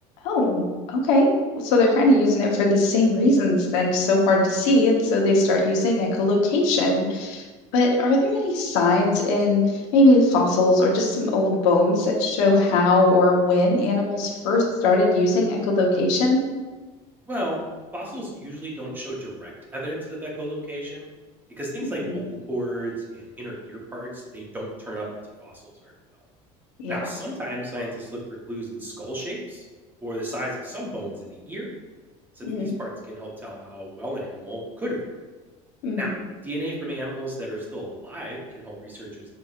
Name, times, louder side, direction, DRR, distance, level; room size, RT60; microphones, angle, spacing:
voice 1, 0.2-7.4 7.7-16.4 22.0-22.2 26.8-27.0 32.5-32.7 35.8-36.1, left 2 dB, 85° left, 0 dB, 0.9 m, -20 dB
voice 2, 17.2-17.6 17.9-21.1 21.6-25.1 25.4-25.9 26.9-28.2 28.5-29.6 30.0-31.7 32.3-35.0 36.0-36.1 36.4-39.3, equal, 15° right, -3 dB, 0.9 m, -33 dB
5.6 x 2.9 x 2.4 m, 1.3 s
cardioid pair, 145°, 15 cm